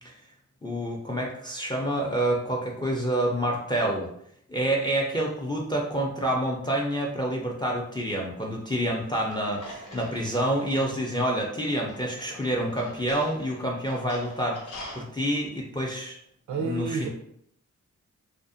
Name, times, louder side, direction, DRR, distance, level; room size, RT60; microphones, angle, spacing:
voice 1, 0.6-4.1 4.5-16.2 16.6-17.1, right 1 dB, 15° left, -1 dB, 0.4 m, -28 dB
sound 1, 9.3-15.0, left 1 dB, 75° left, 0.6 m, -45 dB
voice 2, 16.5-17.1, right 5 dB, 70° right, 2 dB, 0.5 m, -30 dB
2.5 x 2.0 x 2.5 m, 0.69 s
cardioid pair, 65°, 31 cm